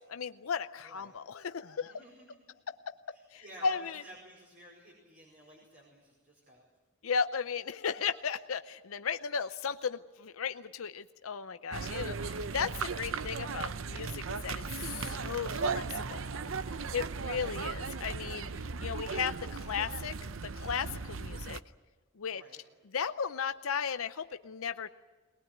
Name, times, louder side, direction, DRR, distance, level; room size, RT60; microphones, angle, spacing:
voice 1, 0.0-2.0 2.7-2.9 3.3-4.0 7.0-16.2 16.9-20.2 20.5-21.6 22.2-22.4 22.9-24.9, left 6 dB, 90° left, 10 dB, 0.6 m, -35 dB
voice 2, 0.8-1.2 1.7-2.4 3.1-6.6 22.3-22.6, right 1 dB, 40° right, -3 dB, 4.8 m, -54 dB
sound 1, 11.7-21.6, right 4 dB, 70° right, 0.7 m, -37 dB
21.5 x 19.0 x 9.3 m, 1.3 s
head